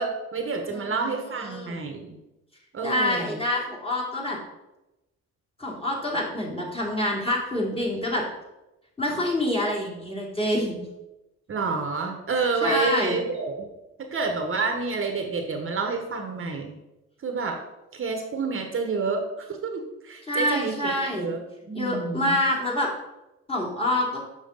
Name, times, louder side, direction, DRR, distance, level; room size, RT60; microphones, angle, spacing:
voice 1, 0.0-2.2 2.7-3.4 11.5-13.7 14.0-16.7 17.2-17.6 17.9-21.4 21.7-22.4, right 4 dB, 45° right, 4 dB, 1.1 m, -29 dB
voice 2, 0.7-1.1 1.4-1.8 2.8-4.4 5.6-8.3 9.0-10.9 12.6-13.2 20.3-21.3 21.7-22.9 23.5-24.2, left 1 dB, 20° left, -3 dB, 2.5 m, -26 dB
7.1 x 5.8 x 3.9 m, 0.95 s
cardioid pair, 90°, 30 cm